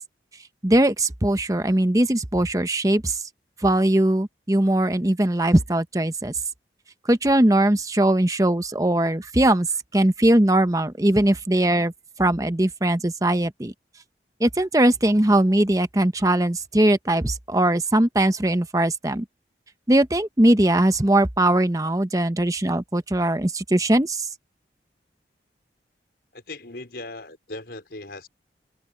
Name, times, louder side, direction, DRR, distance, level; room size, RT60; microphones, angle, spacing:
voice 1, 0.6-3.1 3.6-6.3 7.1-9.7 9.9-11.9 12.2-13.7 14.4-19.2 19.9-24.2, right 1 dB, 20° right, 0.9 m, -20 dB
voice 2, 26.3-28.3, left 2 dB, 70° left, 4.9 m, -38 dB
head